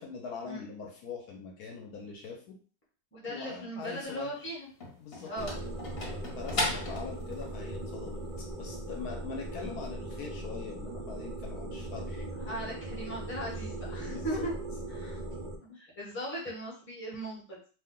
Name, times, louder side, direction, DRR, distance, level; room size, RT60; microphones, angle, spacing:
voice 1, 0.0-2.6 3.3-4.6 5.0-5.3 6.4-12.3 14.1-14.5, left 5 dB, 70° left, 2 dB, 1.1 m, -42 dB
voice 2, 3.1-4.7 5.2-5.5 12.4-14.5 14.9-15.2 15.7-17.6, right 1 dB, 10° left, -4 dB, 0.7 m, -38 dB
sound 1, 4.0-7.6, left 2 dB, 45° left, 1.0 m, -36 dB
sound 2, 5.4-15.6, right 1 dB, 80° right, 0.4 m, -39 dB
2.8 x 2.2 x 3.7 m, 0.40 s
omnidirectional pair, 1.8 m